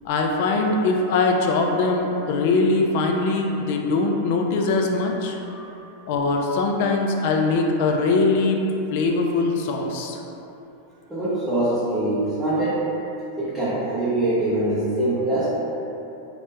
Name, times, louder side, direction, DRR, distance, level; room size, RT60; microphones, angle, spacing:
voice 1, 0.1-5.4 6.1-8.6 8.9-10.2, left 3 dB, 60° left, 1 dB, 0.3 m, -22 dB
voice 2, 11.1-12.9 13.4-15.4, right 1 dB, 10° right, -11 dB, 0.7 m, -23 dB
2.9 x 2.1 x 3.3 m, 3.0 s
hypercardioid pair, 95°, 0 cm